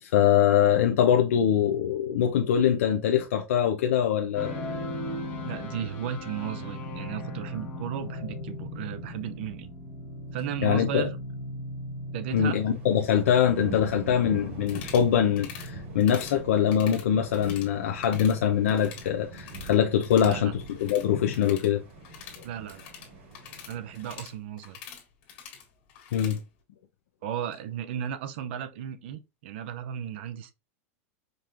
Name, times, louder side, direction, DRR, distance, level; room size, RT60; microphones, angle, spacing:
voice 1, 0.0-4.6 10.6-11.1 12.3-21.8 22.4-22.5 26.1-26.4, left 9 dB, 75° left, 0.6 m, -23 dB
sound 1, 4.4-24.3, left 1 dB, 25° left, 1.2 m, -40 dB
voice 2, 5.4-9.7 10.3-11.2 12.1-12.6 20.2-20.5 22.4-22.9 23.7-24.8 27.2-30.5, right 9 dB, 50° right, 0.6 m, -35 dB
sound 2, 12.3-24.2, right 4 dB, 70° right, 1.9 m, -44 dB
sound 3, 14.6-15.1 15.4-15.7 16.0-16.4 16.7-17.7 17.9-18.4 18.6-19.7 20.0-26.4, left 8 dB, 45° left, 1.8 m, -45 dB
5.1 x 3.0 x 2.5 m
supercardioid pair, 175°, 8 cm